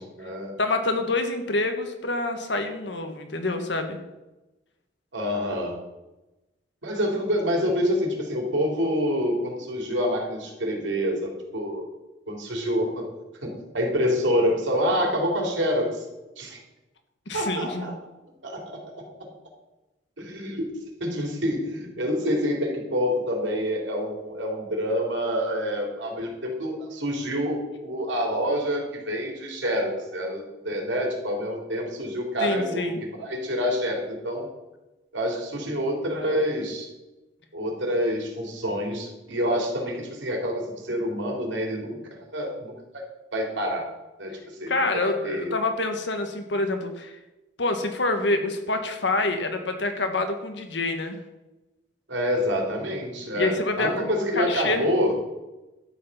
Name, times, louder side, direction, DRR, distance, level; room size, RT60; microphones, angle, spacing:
voice 1, 0.0-0.5 5.1-5.8 6.8-11.8 12.3-13.0 13.4-16.1 16.4-16.6 17.3-17.9 18.4-18.8 20.2-20.7 21.0-34.5 35.1-36.9 37.5-42.0 42.3-43.0 43.3-43.9 44.2-45.5 52.1-55.1, equal, 90° right, 1 dB, 3.5 m, -27 dB
voice 2, 0.6-4.0 17.3-17.9 32.4-33.0 44.7-47.1 47.6-51.2 53.3-54.1 54.3-54.8, left 2 dB, 70° left, 6 dB, 1.7 m, -27 dB
12.0 x 8.1 x 5.7 m, 1.0 s
head